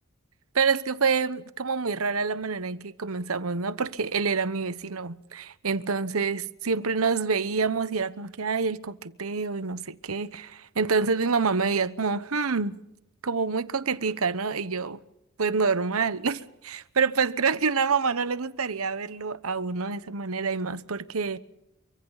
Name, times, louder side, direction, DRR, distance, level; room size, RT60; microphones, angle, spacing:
voice 1, 0.5-12.8 13.2-15.0 15.4-21.4, right 5 dB, 80° right, 1.0 m, -27 dB
28.5 x 24.5 x 4.1 m
head